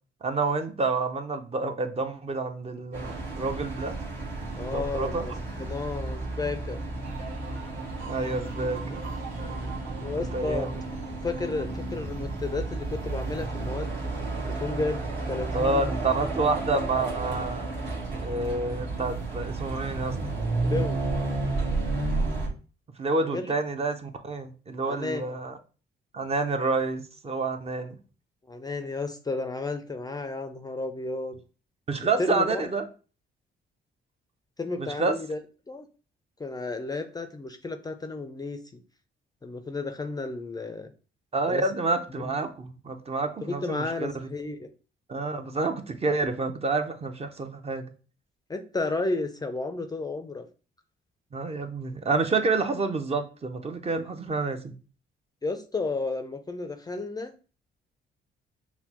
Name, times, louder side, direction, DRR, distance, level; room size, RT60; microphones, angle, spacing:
voice 1, 0.2-4.0 4.6-5.3 8.1-9.0 10.3-10.8 15.5-17.7 18.2-20.1 23.0-25.6 26.1-28.0 31.9-32.8 34.8-35.2 41.3-44.1 45.1-47.9 51.3-54.7, right 3 dB, 30° right, 7 dB, 0.6 m, -28 dB
sound 1, 2.9-22.5, right 2 dB, 65° right, 1.4 m, -32 dB
voice 2, 4.6-5.3 5.6-6.8 10.0-10.7 11.2-13.9 14.5-15.9 20.6-21.0 23.2-23.5 24.8-25.2 28.5-31.4 32.2-32.7 34.6-35.4 35.7-35.9 36.4-38.8 39.4-40.9 41.5-41.7 42.1-42.3 43.4-44.7 48.5-50.5 55.4-57.3, left 3 dB, 20° left, 7 dB, 0.4 m, -32 dB
sound 2, 7.0-16.6 16.9-17.5, right 5 dB, 80° right, 1.4 m, -46 dB
5.7 x 2.2 x 2.9 m, 0.36 s
cardioid pair, 90°, 20 cm